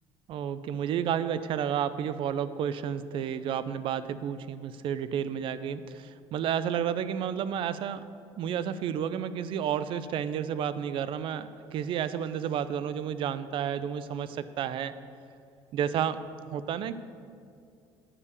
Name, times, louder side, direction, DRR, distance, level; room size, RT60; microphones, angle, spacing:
voice 1, 0.3-8.0 8.4-14.9 15.7-16.2 16.5-16.9, right 9 dB, 60° right, 14 dB, 0.4 m, -31 dB
9.9 x 4.7 x 6.8 m, 2.4 s
cardioid pair, 100°, 10 cm